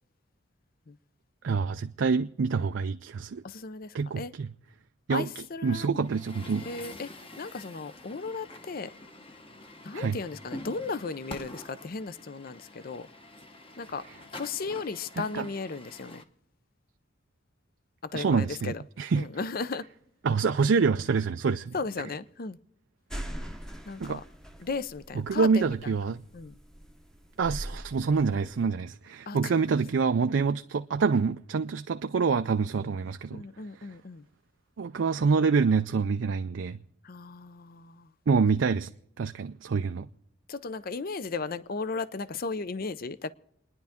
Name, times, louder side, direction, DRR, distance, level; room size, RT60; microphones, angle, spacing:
voice 1, 1.4-3.4 3.9-4.5 5.1-6.7 9.9-10.2 15.2-15.5 18.1-19.3 20.2-21.7 24.0-24.2 25.2-26.2 27.4-33.4 34.8-36.8 38.3-38.9 39.2-40.1, right 5 dB, 70° right, 0.4 m, -26 dB
voice 2, 3.4-4.3 5.1-6.1 6.6-8.9 9.8-13.1 13.8-16.2 18.0-18.8 19.1-19.9 21.7-22.6 23.9-24.2 24.6-25.7 26.3-26.6 29.3-29.8 33.3-34.2 37.0-38.1 40.5-43.3, left 4 dB, 45° left, 0.6 m, -36 dB
Truck, 6.0-16.2, left 2 dB, 30° left, 1.0 m, -46 dB
sound 1, 23.1-28.6, equal, 5° left, 0.8 m, -41 dB
29.0 x 10.5 x 3.6 m
head